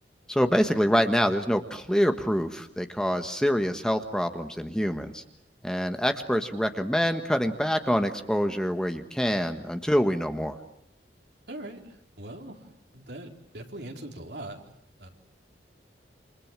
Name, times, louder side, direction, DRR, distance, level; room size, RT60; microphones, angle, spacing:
voice 1, 0.3-5.2 5.6-10.6, equal, 5° left, 6 dB, 1.4 m, -26 dB
voice 2, 11.5-12.6 12.9-15.1, right 1 dB, 70° right, 2 dB, 4.3 m, -41 dB
28.5 x 27.5 x 7.5 m, 0.78 s
head